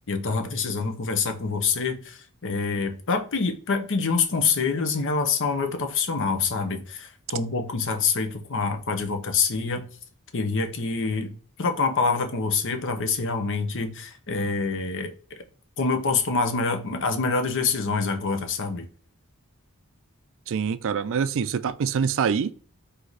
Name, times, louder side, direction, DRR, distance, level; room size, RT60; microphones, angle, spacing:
voice 1, 0.1-9.8 10.3-11.3 11.6-15.4 15.8-18.9, left 4 dB, 60° left, 0.8 m, -26 dB
voice 2, 20.5-22.5, right 6 dB, 60° right, 0.4 m, -25 dB
4.6 x 2.8 x 4.0 m
head